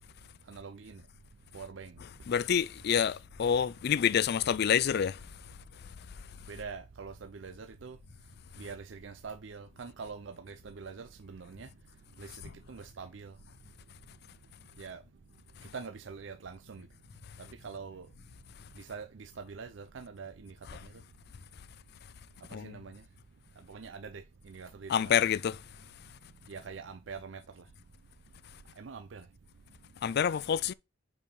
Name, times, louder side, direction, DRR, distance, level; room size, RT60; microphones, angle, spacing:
voice 1, 0.5-1.0 1.5-1.9 6.5-8.0 8.6-11.7 12.2-12.3 12.7-13.3 14.8-15.0 15.7-16.9 17.6-18.1 18.8-20.5 22.6-23.0 23.7-24.2 24.5-25.0 26.5-27.4 28.8-29.2, right 5 dB, 70° right, 0.5 m, -44 dB
voice 2, 2.0-5.2 12.4-12.5 20.6-20.9 22.5-22.8 24.9-25.6 30.0-30.7, left 8 dB, 55° left, 0.4 m, -28 dB
5.3 x 4.8 x 5.3 m
head